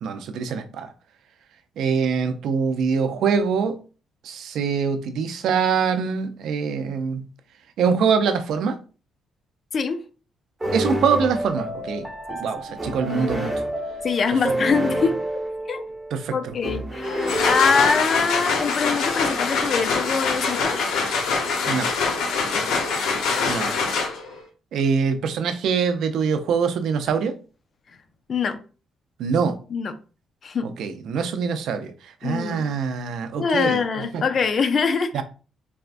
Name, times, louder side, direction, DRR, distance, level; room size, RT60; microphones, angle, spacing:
voice 1, 0.0-0.9 1.8-3.8 4.2-7.3 7.8-8.8 10.7-12.1 12.4-13.5 16.1-16.5 21.7-21.9 23.5-23.7 24.7-27.3 29.2-29.6 30.6-31.9 32.2-33.8 34.1-34.2 35.1-35.2, right 6 dB, 75° right, 0.4 m, -24 dB
sound 1, 10.6-18.3, right 1 dB, 15° right, 1.0 m, -29 dB
voice 2, 14.0-15.2 15.7-15.8 16.3-20.9 22.5-22.6 28.3-28.6 29.7-29.9 30.4-30.7 32.2-32.7 33.4-35.2, left 5 dB, 50° left, 0.5 m, -23 dB
sound 2, 17.0-24.4, left 4 dB, 85° left, 0.7 m, -24 dB
4.2 x 2.2 x 2.5 m
cardioid pair, 90°, 0 cm